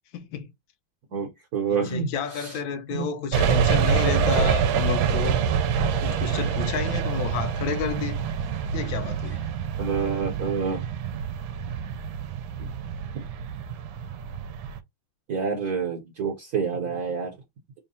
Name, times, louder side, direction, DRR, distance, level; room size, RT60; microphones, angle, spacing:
voice 1, 0.1-0.5 1.8-5.4 6.0-8.2 8.7-9.4, left 7 dB, 75° left, 1.4 m, -30 dB
voice 2, 1.1-2.1 2.3-2.6 2.9-3.1 9.8-11.2 12.6-12.7 15.3-17.3, right 6 dB, 55° right, 1.3 m, -28 dB
sound 1, 3.3-14.8, right 7 dB, 80° right, 1.3 m, -26 dB
3.6 x 2.3 x 4.0 m
omnidirectional pair, 2.3 m